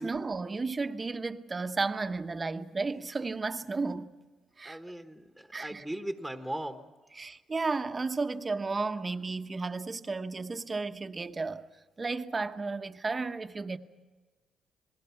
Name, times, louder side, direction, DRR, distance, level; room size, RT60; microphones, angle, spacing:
voice 1, 0.0-4.1 4.6-4.8 5.5-5.8 7.1-11.7 12.0-13.8, right 3 dB, 30° right, 1.0 m, -33 dB
voice 2, 4.6-6.9, right 1 dB, ahead, 1.3 m, -38 dB
30.0 x 20.0 x 5.8 m
cardioid pair, 90°, 0 cm